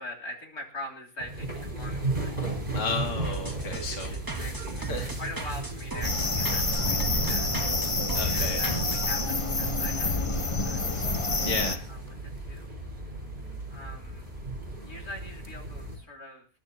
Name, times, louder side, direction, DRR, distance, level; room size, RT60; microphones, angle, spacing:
voice 1, 0.0-2.4 2.7-2.8 3.8-4.7 5.2-7.5 8.3-10.9 11.9-12.7 13.7-14.3 14.8-16.5, left 1 dB, 80° left, -2 dB, 3.9 m, -43 dB
sound 1, 1.2-16.0, right 2 dB, 30° right, 5.2 m, -36 dB
voice 2, 2.7-4.1 4.8-5.2 8.1-8.6 11.4-11.9, left 3 dB, 50° left, 2 dB, 2.2 m, -33 dB
sound 2, 3.2-9.1, right 3 dB, 15° right, 1.8 m, -36 dB
sound 3, 6.0-11.8, left 2 dB, 25° left, 1.0 m, -28 dB
28.0 x 12.0 x 2.9 m, 0.36 s
omnidirectional pair, 1.6 m